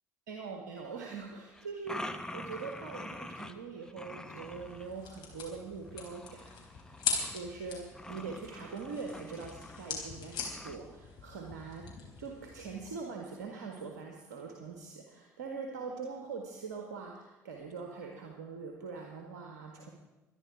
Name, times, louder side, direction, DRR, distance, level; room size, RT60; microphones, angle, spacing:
voice 1, 0.3-7.0 7.3-19.9, right 4 dB, 75° right, 2 dB, 1.5 m, -43 dB
sound 1, 1.5-3.5 3.8-4.9 5.9-7.5 7.9-10.1 10.4-10.8, left 1 dB, 5° left, 1.3 m, -45 dB
sound 2, 4.4-12.9, left 5 dB, 60° left, 3.9 m, -41 dB
24.5 x 10.5 x 4.8 m, 1.1 s
figure-of-eight pair, 55°, 9 cm